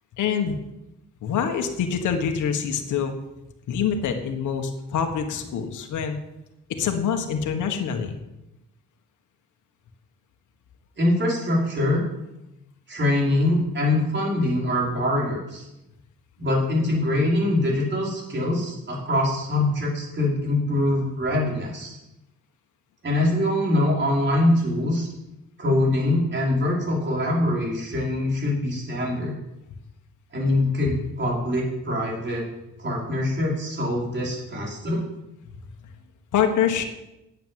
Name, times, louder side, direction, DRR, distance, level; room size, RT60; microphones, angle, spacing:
voice 1, 0.2-0.6 1.2-3.1 3.7-6.2 6.7-8.2 35.5-35.6 36.3-36.8, left 7 dB, 75° left, 4 dB, 1.6 m, -25 dB
voice 2, 11.0-12.0 12.9-15.7 16.4-22.0 23.0-25.1 25.6-29.3 30.3-32.4 32.8-35.0, left 1 dB, 40° right, -3 dB, 5.4 m, -23 dB
9.3 x 8.6 x 7.6 m, 0.92 s
cardioid pair, 90°, 30 cm